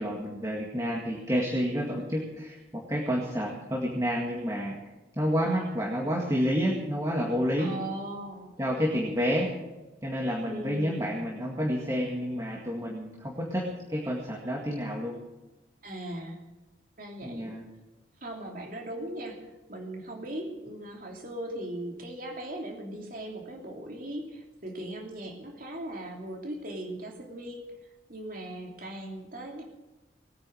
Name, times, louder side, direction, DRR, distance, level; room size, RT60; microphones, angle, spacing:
voice 1, 0.0-4.7 5.1-7.7 8.6-9.5 10.0-15.2 17.2-17.6, equal, 15° right, -1 dB, 2.0 m, -29 dB
voice 2, 7.6-8.6 10.5-11.0 15.8-16.4 17.0-17.5 18.2-29.6, right 1 dB, 45° right, 1 dB, 3.0 m, -39 dB
20.0 x 9.6 x 6.4 m, 1.1 s
head